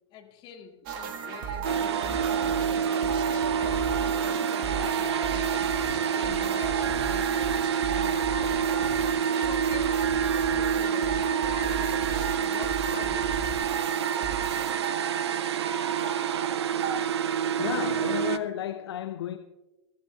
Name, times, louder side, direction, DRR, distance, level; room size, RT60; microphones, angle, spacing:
voice 1, 0.1-5.6 6.1-13.5, left 8 dB, 30° left, 1.9 m, -45 dB
sound 1, 0.9-17.0, right 6 dB, 45° right, 1.6 m, -34 dB
sound 2, 1.6-18.4, right 7 dB, 60° right, 0.7 m, -27 dB
Piano, 10.2-11.8 14.2-14.3, right 5 dB, 10° right, 1.0 m, -51 dB
voice 2, 17.6-19.4, left 11 dB, 55° left, 0.7 m, -33 dB
23.5 x 14.5 x 2.3 m
figure-of-eight pair, 105°, 16 cm